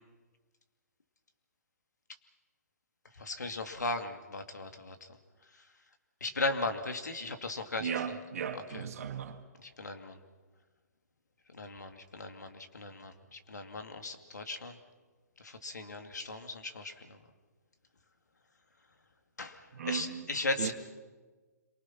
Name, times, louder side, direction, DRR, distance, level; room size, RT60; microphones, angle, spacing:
voice 1, 3.2-5.0 6.2-7.9 8.5-8.8 9.6-10.2 11.5-14.8 15.4-17.2 19.4-20.7, left 2 dB, 85° left, 2.5 m, -37 dB
voice 2, 7.8-9.4 19.7-20.3 20.6-20.7, right 7 dB, 60° right, 2.1 m, -36 dB
27.0 x 23.5 x 6.1 m
hypercardioid pair, 135°, 9 cm